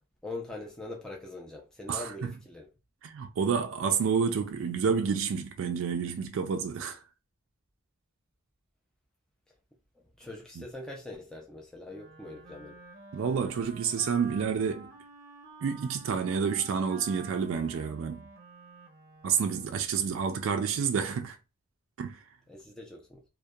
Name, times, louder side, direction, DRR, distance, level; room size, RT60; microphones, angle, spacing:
voice 1, 0.2-2.7 10.2-12.8 22.5-23.2, left 2 dB, 5° left, 0.4 m, -42 dB
voice 2, 1.9-2.3 3.0-7.0 10.6-10.7 13.1-14.9 15.6-18.3 19.2-21.4 22.0-22.2, right 6 dB, 75° right, 0.3 m, -29 dB
Wind instrument woodwind instrument, 11.9-20.0, right 3 dB, 45° right, 0.7 m, -50 dB
2.6 x 2.1 x 2.3 m
head